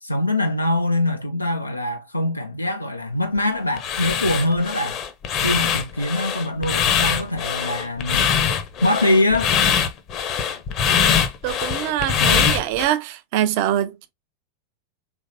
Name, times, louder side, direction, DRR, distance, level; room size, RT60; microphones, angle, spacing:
voice 1, 0.0-5.0 5.4-8.3 8.8-9.6, left 1 dB, 85° left, 0.4 m, -23 dB
sound 1, 3.8-12.9, left 7 dB, 35° left, 0.7 m, -22 dB
voice 2, 11.4-14.1, right 12 dB, 45° right, 0.5 m, -24 dB
4.2 x 3.2 x 2.6 m
figure-of-eight pair, 90°, 0 cm